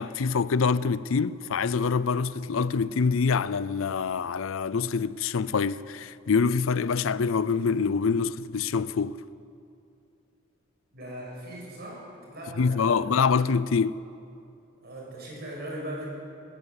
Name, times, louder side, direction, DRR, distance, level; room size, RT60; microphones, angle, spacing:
voice 1, 0.0-9.2 12.6-14.0, left 5 dB, 75° left, 0.5 m, -25 dB
voice 2, 10.9-12.0 12.3-13.0 14.8-16.1, right 1 dB, 50° right, 7.2 m, -39 dB
21.0 x 16.0 x 8.3 m
head